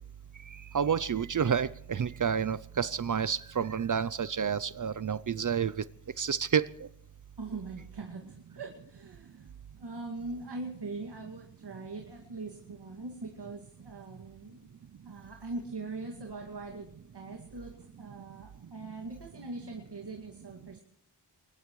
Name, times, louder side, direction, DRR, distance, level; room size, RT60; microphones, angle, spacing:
voice 1, 0.5-5.9 6.2-6.9, right 7 dB, 50° right, 18 dB, 0.5 m, -29 dB
voice 2, 7.4-14.6 15.1-20.8, right 3 dB, 75° right, 1 dB, 2.3 m, -42 dB
22.5 x 20.5 x 3.1 m, 0.73 s
wide cardioid pair, 90°, 41 cm